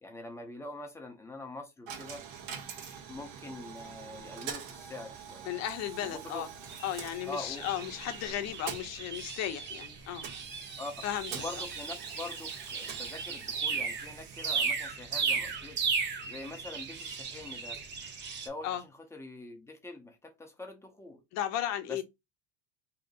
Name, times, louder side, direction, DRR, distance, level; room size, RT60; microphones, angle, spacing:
voice 1, 0.0-2.2 3.1-5.5 6.0-6.4 7.3-7.7 10.8-11.0 11.3-15.8 16.3-17.8 18.4-21.2 21.9-22.0, left 2 dB, 10° left, 0.5 m, -44 dB
Coin (dropping), 1.9-18.8, right 7 dB, 80° right, 1.0 m, -47 dB
voice 2, 5.4-6.5 6.8-10.3 11.0-11.3 18.6-18.8 21.3-22.0, left 11 dB, 50° left, 0.7 m, -35 dB
sound 1, 6.7-18.5, right 5 dB, 30° right, 0.7 m, -36 dB
2.9 x 2.5 x 3.7 m
cardioid pair, 145°, 34 cm